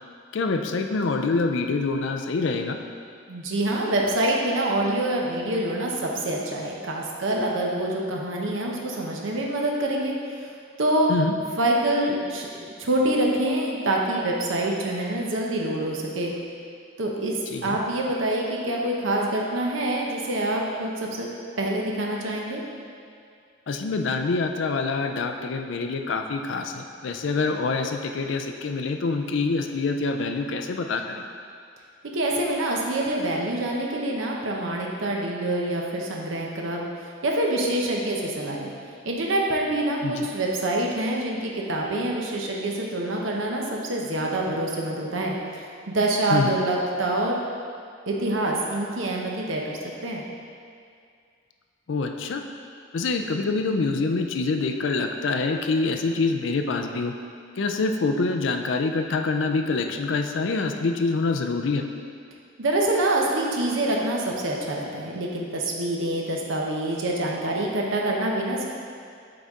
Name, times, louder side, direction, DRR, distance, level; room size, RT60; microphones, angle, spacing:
voice 1, 0.3-2.8 11.1-11.4 17.5-17.8 23.7-31.2 40.0-40.3 46.3-46.6 51.9-52.4 52.9-57.1 57.6-61.9, left 3 dB, 65° left, 5 dB, 0.4 m, -26 dB
voice 2, 3.3-10.1 10.8-11.1 11.6-16.3 17.0-17.4 17.6-21.3 21.6-22.6 32.1-36.9 37.2-38.7 39.0-47.4 48.1-50.2 62.6-68.7, right 1 dB, 80° right, -1 dB, 0.8 m, -26 dB
7.7 x 4.0 x 3.7 m, 2.3 s
head